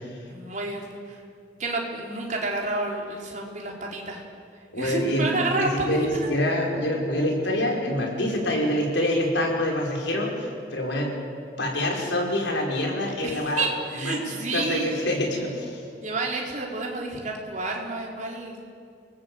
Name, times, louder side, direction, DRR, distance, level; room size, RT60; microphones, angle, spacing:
voice 1, 0.3-1.2 1.6-4.2 4.8-6.1 13.2-15.0 16.0-18.6, right 2 dB, 45° right, -2 dB, 4.3 m, -29 dB
voice 2, 4.7-5.3 5.6-11.1 11.6-13.6 13.9-15.8, left 1 dB, 90° left, 0 dB, 5.6 m, -26 dB
29.0 x 19.0 x 8.1 m, 2.2 s
head